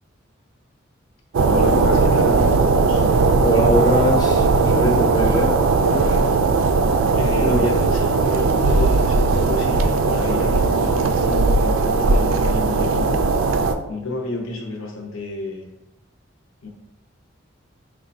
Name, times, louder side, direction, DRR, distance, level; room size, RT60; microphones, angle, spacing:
voice 1, 1.3-3.0 3.5-3.9 7.1-13.2 13.9-15.7 16.6-16.7, left 2 dB, 80° left, 0 dB, 0.7 m, -30 dB
sound 1, 1.3-13.7, right 3 dB, 80° right, 0.4 m, -18 dB
voice 2, 3.4-6.2 7.4-7.7, equal, 20° left, 1 dB, 0.6 m, -22 dB
4.8 x 2.2 x 3.9 m, 0.89 s
head